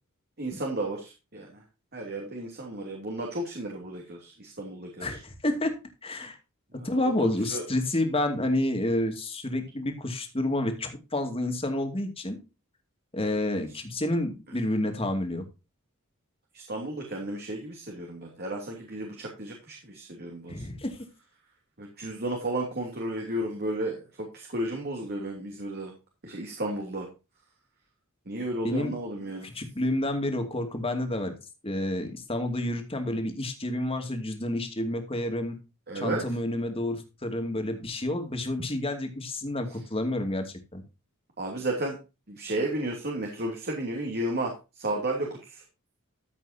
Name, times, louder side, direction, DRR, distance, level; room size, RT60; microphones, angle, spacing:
voice 1, 0.4-1.6 1.9-5.2 6.8-7.6 16.5-20.6 21.8-25.9 26.2-27.1 28.3-29.5 35.9-36.2 38.6-38.7 41.4-42.0 42.3-45.6, right 1 dB, 45° right, 0 dB, 2.9 m, -33 dB
voice 2, 5.0-5.8 6.0-6.4 6.8-12.4 13.1-15.4 20.5-21.0 28.6-28.9 29.5-31.4 31.6-35.6 35.9-40.8, left 1 dB, 25° left, 5 dB, 2.4 m, -29 dB
14.0 x 8.1 x 2.8 m, 0.29 s
head